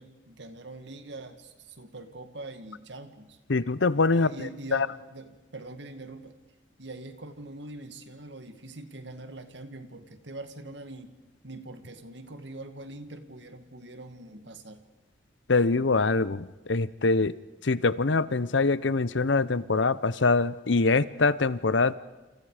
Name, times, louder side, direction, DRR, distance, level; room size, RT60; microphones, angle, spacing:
voice 1, 0.0-3.4 4.1-6.4 6.8-11.1 11.4-14.8, right 2 dB, 70° right, 9 dB, 2.2 m, -43 dB
voice 2, 3.5-4.3 4.7-4.9 15.5-17.4 17.6-21.9, left 3 dB, 80° left, 17 dB, 0.8 m, -24 dB
28.5 x 28.5 x 5.1 m, 1.1 s
head